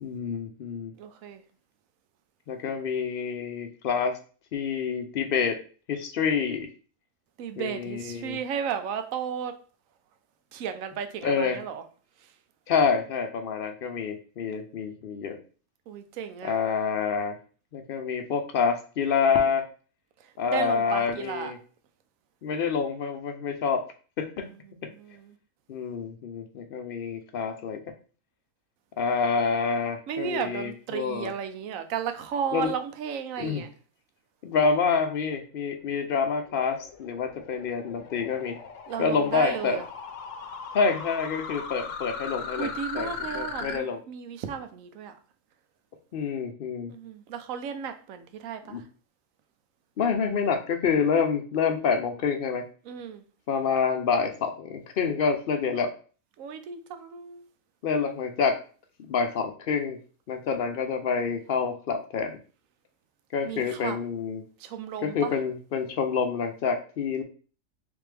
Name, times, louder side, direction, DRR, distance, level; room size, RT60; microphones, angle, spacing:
voice 1, 0.0-0.9 2.5-4.2 4.5-5.6 5.9-6.7 7.6-8.4 11.2-11.6 12.7-15.4 16.4-17.3 17.7-19.7 20.4-21.6 22.4-23.8 24.2-24.5 25.7-27.8 29.0-31.3 32.5-32.7 33.4-33.6 34.4-38.6 39.0-39.8 40.7-42.7 42.9-44.0 46.1-46.9 48.7-48.8 50.0-52.6 53.5-55.9 57.8-58.6 59.0-60.0 60.3-62.4 63.3-64.4 65.0-67.2, left 5 dB, 60° left, 0.6 m, -27 dB
voice 2, 1.0-1.4 7.4-9.6 10.5-11.8 12.2-12.3 15.9-16.6 20.2-21.5 24.4-24.5 24.8-25.4 30.1-33.7 38.9-39.9 42.6-45.2 46.9-48.8 52.9-53.2 56.4-57.5 63.4-64.0 64.6-65.3, right 7 dB, 85° right, 1.0 m, -34 dB
sound 1, 35.7-43.8, left 5 dB, 75° left, 0.9 m, -39 dB
3.5 x 3.4 x 3.3 m
omnidirectional pair, 1.4 m